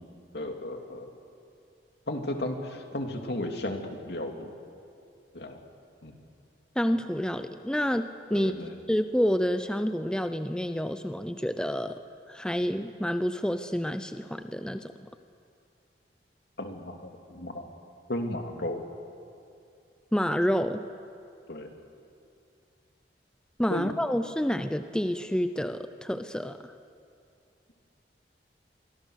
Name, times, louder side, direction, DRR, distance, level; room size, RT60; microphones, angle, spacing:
voice 1, 0.3-1.1 2.1-4.5 5.3-5.6 6.0-6.1 8.3-8.7 16.6-17.6 18.1-18.8 21.5-21.7 23.7-23.9, left 1 dB, 65° left, 4 dB, 2.7 m, -34 dB
voice 2, 6.8-8.5 8.9-12.0 12.3-14.9 20.1-20.8 23.6-26.7, equal, 5° left, 9 dB, 0.6 m, -28 dB
27.0 x 24.0 x 6.5 m, 2.5 s
head